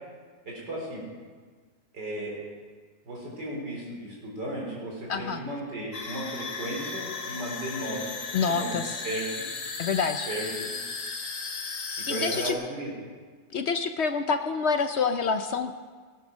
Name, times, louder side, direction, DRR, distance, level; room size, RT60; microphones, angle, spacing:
voice 1, 0.5-1.0 1.9-2.4 3.1-8.8 9.0-9.5 10.3-10.7 12.1-12.9, right 1 dB, 80° right, -3 dB, 4.5 m, -35 dB
voice 2, 5.1-5.4 8.3-9.0 9.8-10.3 12.1-12.5 13.5-15.7, left 5 dB, 75° left, 8 dB, 0.6 m, -27 dB
sound 1, 5.9-12.5, left 4 dB, 50° left, 1.7 m, -35 dB
18.5 x 9.6 x 6.3 m, 1.5 s
omnidirectional pair, 1.8 m